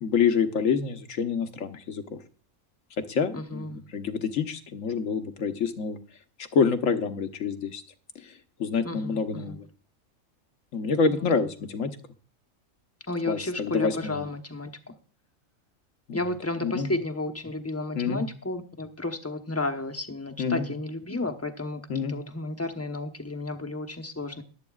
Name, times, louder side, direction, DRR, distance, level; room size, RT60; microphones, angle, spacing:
voice 1, 0.0-2.0 3.0-6.0 6.5-7.8 8.2-8.3 8.6-9.7 10.7-12.0 13.3-14.2 16.1-16.3 16.6-16.9 17.9-18.2 20.4-20.7 21.9-22.2, left 5 dB, 75° left, 7 dB, 1.4 m, -27 dB
voice 2, 3.3-3.8 8.8-9.6 11.1-11.4 13.1-14.9 16.1-21.8 22.1-24.4, left 2 dB, 15° left, 6 dB, 0.8 m, -32 dB
22.0 x 8.4 x 2.4 m, 0.40 s
omnidirectional pair, 1.4 m